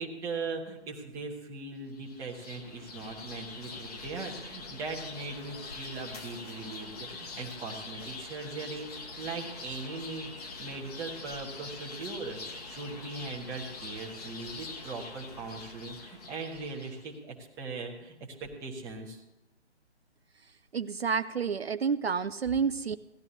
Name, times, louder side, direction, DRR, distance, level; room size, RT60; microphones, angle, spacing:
voice 1, 0.0-19.2, right 3 dB, 10° right, -1 dB, 1.1 m, -40 dB
sound 1, 1.9-17.1, left 3 dB, 35° left, 1.3 m, -44 dB
voice 2, 20.7-23.0, right 6 dB, 65° right, 12 dB, 0.5 m, -29 dB
17.0 x 12.0 x 2.8 m, 0.99 s
figure-of-eight pair, 140°, 34 cm